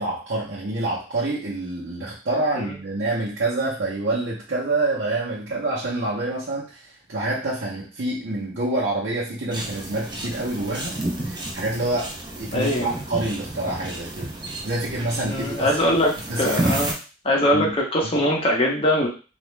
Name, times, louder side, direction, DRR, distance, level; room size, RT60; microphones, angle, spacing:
voice 1, 0.0-14.3 14.6-15.7 16.3-16.7 17.5-17.7, right 2 dB, 85° right, -8 dB, 0.8 m, -27 dB
sound 1, 9.5-16.9, right 1 dB, 25° right, 0.6 m, -31 dB
voice 2, 12.5-12.9 15.3-16.9 17.2-19.1, left 1 dB, 30° left, -1 dB, 0.7 m, -22 dB
2.5 x 2.1 x 3.1 m, 0.34 s
head